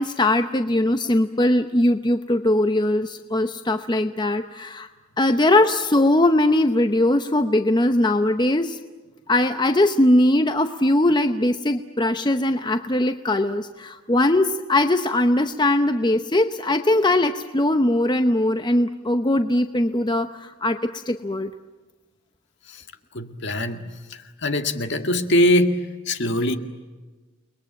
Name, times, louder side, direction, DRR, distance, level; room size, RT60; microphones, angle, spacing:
voice 1, 0.0-4.9 5.2-8.8 9.3-21.5, left 1 dB, 20° left, 8 dB, 0.8 m, -20 dB
voice 2, 23.1-26.6, left 1 dB, 55° left, 7 dB, 2.0 m, -22 dB
30.0 x 21.0 x 9.0 m, 1.3 s
head